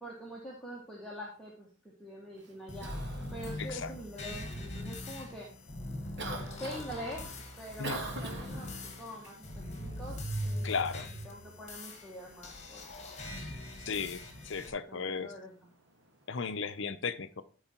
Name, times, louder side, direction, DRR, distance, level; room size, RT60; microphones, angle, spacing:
voice 1, 0.0-1.7 2.0-2.9 3.3-5.5 6.5-7.2 7.6-10.2 10.4-10.9 11.2-13.1 14.7-15.5, equal, 5° left, 1.5 m, -45 dB
Cough, 2.3-16.8, right 2 dB, 55° right, 1.8 m, -48 dB
sound 1, 2.7-14.7, left 1 dB, 30° left, 1.7 m, -41 dB
voice 2, 3.6-3.9 7.8-8.0 10.6-11.1 13.9-15.3 16.3-17.4, left 5 dB, 55° left, 0.7 m, -35 dB
12.5 x 4.8 x 4.5 m
head